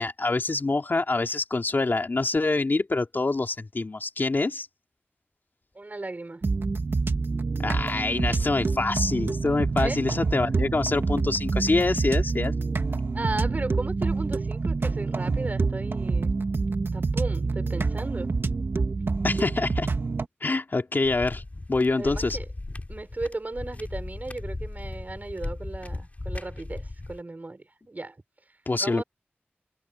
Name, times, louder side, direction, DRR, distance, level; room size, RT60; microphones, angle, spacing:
voice 1, 0.0-4.7 7.6-12.5 19.2-19.9 20.4-21.4 21.7-22.4 28.7-29.0, left 3 dB, 55° left, 2.8 m, -25 dB
voice 2, 5.7-6.4 9.8-10.0 13.1-16.3 16.9-18.3 21.9-22.5 22.9-28.2 28.8-29.0, right 2 dB, 40° right, 6.5 m, -35 dB
sound 1, 6.4-20.3, right 4 dB, 65° right, 1.8 m, -27 dB
sound 2, 21.0-27.2, left 2 dB, 35° left, 4.9 m, -36 dB
wide cardioid pair, 65°, 4 cm